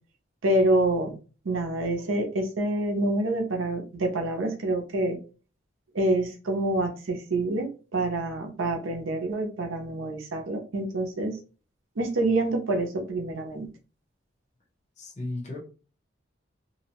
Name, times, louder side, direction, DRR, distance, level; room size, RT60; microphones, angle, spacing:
voice 1, 0.4-1.2 1.4-5.2 5.9-11.4 12.0-13.7, right 1 dB, 80° right, 3 dB, 0.6 m, -27 dB
voice 2, 15.0-15.6, left 2 dB, 35° left, -1 dB, 0.7 m, -34 dB
2.6 x 2.0 x 2.9 m, 0.35 s
head